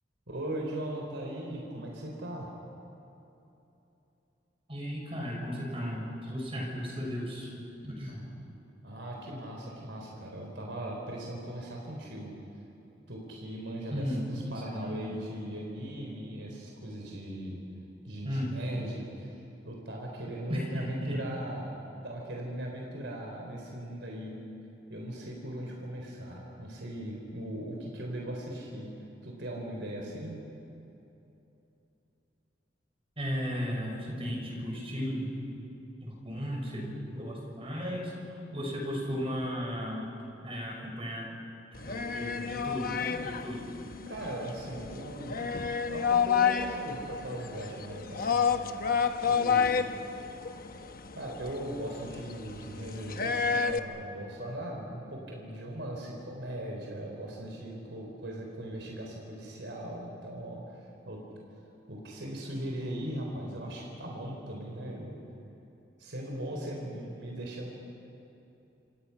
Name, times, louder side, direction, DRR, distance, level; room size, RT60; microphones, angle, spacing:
voice 1, 0.3-2.5 8.8-12.4 13.1-17.6 18.0-19.4 19.6-21.8 22.0-24.4 24.9-29.0 29.2-30.4 44.1-45.5 45.9-48.7 49.3-49.9 51.2-61.3 61.9-65.2 66.0-67.7, right 1 dB, 75° right, -1 dB, 4.0 m, -39 dB
voice 2, 4.7-7.5 7.8-8.3 13.9-15.0 18.2-18.5 20.5-21.2 33.2-35.3 36.0-40.1 40.4-41.3 41.9-43.9, equal, 30° right, -1 dB, 6.3 m, -35 dB
sound 1, 41.8-53.8, left 6 dB, 50° left, 1.0 m, -30 dB
28.0 x 27.0 x 5.9 m, 3.0 s
head